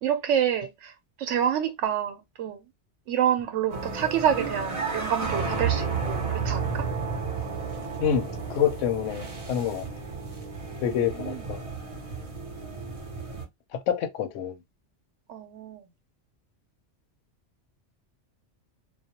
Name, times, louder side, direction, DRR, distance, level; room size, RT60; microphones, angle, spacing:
voice 1, 0.0-0.9 1.2-2.6 3.1-6.9 10.8-11.4 15.3-15.8, right 9 dB, 85° right, 0.9 m, -28 dB
sound 1, 3.7-13.4, right 5 dB, 40° right, 0.5 m, -32 dB
voice 2, 8.0-9.9 10.8-11.6 13.7-14.6, left 9 dB, 85° left, 0.9 m, -27 dB
2.3 x 2.1 x 2.7 m
omnidirectional pair, 1.2 m